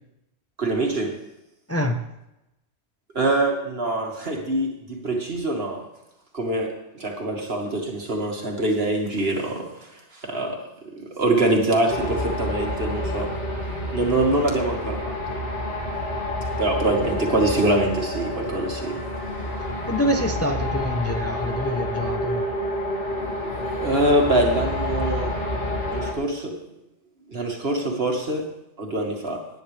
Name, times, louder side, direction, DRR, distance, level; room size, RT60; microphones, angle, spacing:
voice 1, 0.6-1.2 3.1-5.8 6.3-10.6 11.1-13.3 13.9-15.4 16.6-19.0 23.1-26.6 27.3-28.5 28.8-29.4, right 2 dB, 55° right, 1 dB, 2.3 m, -24 dB
voice 2, 1.7-2.0 19.9-22.5, equal, 15° left, 4 dB, 0.8 m, -26 dB
sound 1, 11.9-26.1, left 1 dB, 85° left, 2.6 m, -28 dB
18.0 x 10.0 x 3.4 m, 0.89 s
omnidirectional pair, 1.2 m